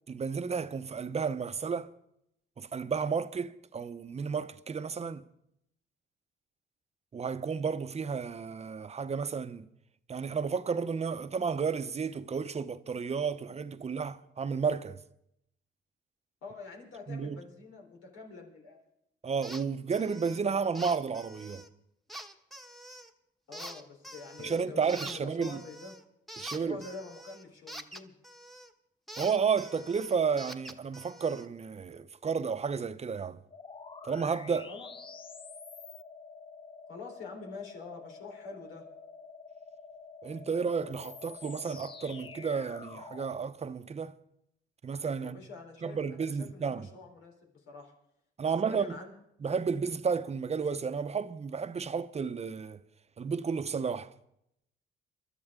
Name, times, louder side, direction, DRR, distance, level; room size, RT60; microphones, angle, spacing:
voice 1, 0.1-1.9 2.6-5.2 7.1-9.7 10.1-15.0 17.1-17.4 19.2-21.7 24.4-25.6 26.4-26.8 29.2-33.4 34.0-34.7 40.2-44.1 44.8-45.4 45.8-46.9 48.4-49.0 49.4-52.8 53.2-54.1, right 5 dB, 35° right, 0.8 m, -32 dB
voice 2, 16.4-18.8 23.5-25.9 26.5-28.1 34.6-34.9 36.9-38.8 45.2-47.9 48.6-49.1, left 4 dB, 90° left, 3.9 m, -46 dB
sound 1, 19.4-19.6 19.9-20.4 20.7-21.7 22.1-23.1 23.5-24.6 24.9-28.7 29.1-31.5, right 1 dB, ahead, 1.2 m, -45 dB
sound 2, 33.5-43.4, left 4 dB, 25° left, 0.7 m, -48 dB
24.5 x 12.5 x 3.7 m
cardioid pair, 90°, 20 cm